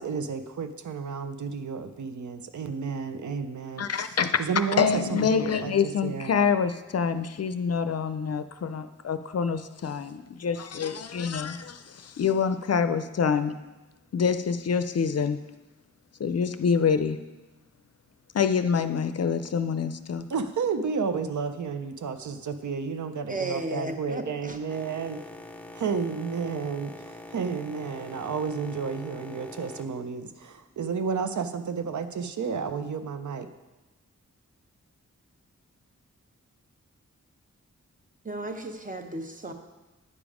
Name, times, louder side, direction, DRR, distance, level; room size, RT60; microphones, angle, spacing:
voice 1, 0.0-5.7 6.0-6.4 20.3-25.2 25.7-33.5, right 5 dB, 75° right, 0.6 m, -31 dB
voice 2, 3.8-4.3 4.8-11.6 12.0-13.6 14.1-15.4 16.2-17.2 18.3-20.2, left 6 dB, 55° left, 0.5 m, -26 dB
voice 3, 23.3-24.6 38.2-39.5, right 2 dB, 25° right, 0.9 m, -34 dB
Boat Water vehicle, 24.7-31.1, left 1 dB, 5° left, 0.5 m, -45 dB
9.7 x 5.2 x 4.9 m
wide cardioid pair, 90°, 30 cm